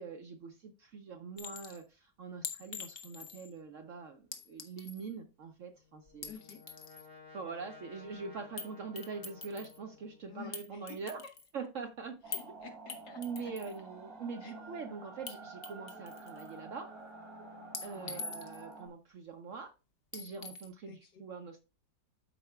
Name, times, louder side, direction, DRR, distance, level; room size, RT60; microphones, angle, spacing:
voice 1, 0.0-6.3 7.3-11.2 11.5-12.2 13.2-16.9 17.8-19.7 20.1-21.6, right 5 dB, 65° right, 0.8 m, -43 dB
Chink clink, 1.4-1.8 2.4-3.5 4.3-5.1 6.1-7.1 8.6-8.7 9.0-9.8 10.5-11.5 12.3-12.5 12.9-13.8 15.3-15.4 15.6-16.5 17.7-18.7 20.1-20.7, left 5 dB, 45° left, 0.8 m, -44 dB
Brass instrument, 5.8-10.5, left 4 dB, 5° left, 3.0 m, -56 dB
voice 2, 6.2-6.6 10.3-11.0 12.3-13.7 14.4-14.5 17.9-18.2 20.9-21.2, left 6 dB, 75° left, 1.8 m, -51 dB
sound 1, 12.2-18.9, right 3 dB, 35° right, 3.7 m, -49 dB
12.5 x 4.7 x 2.2 m
omnidirectional pair, 1.9 m